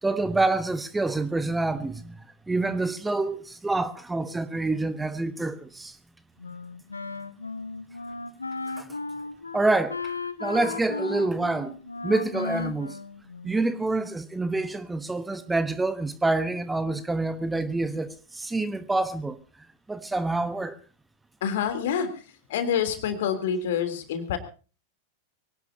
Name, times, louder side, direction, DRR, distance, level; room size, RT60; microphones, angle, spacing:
voice 1, 0.0-2.2 2.5-6.0 8.8-8.9 9.5-10.1 10.4-11.8 12.0-13.0 13.4-19.4 19.9-20.8, right 2 dB, 10° right, 1.1 m, -27 dB
Wind instrument woodwind instrument, 6.4-13.9, left 3 dB, 80° left, 1.1 m, -35 dB
voice 2, 21.4-22.1 22.5-24.4, left 8 dB, 55° left, 3.4 m, -27 dB
24.0 x 18.0 x 2.8 m
figure-of-eight pair, 90°, 0 cm